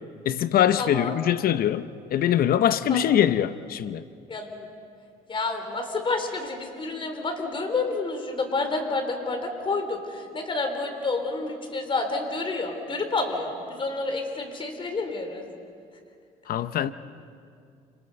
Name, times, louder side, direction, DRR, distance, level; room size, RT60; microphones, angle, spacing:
voice 1, 0.3-4.0 16.5-16.9, left 10 dB, 60° left, 0.8 m, -23 dB
voice 2, 0.8-1.1 2.9-3.0 4.3-4.7 5.3-15.4, left 3 dB, 30° left, 4.0 m, -29 dB
29.5 x 27.0 x 5.4 m
cardioid pair, 110°, 17 cm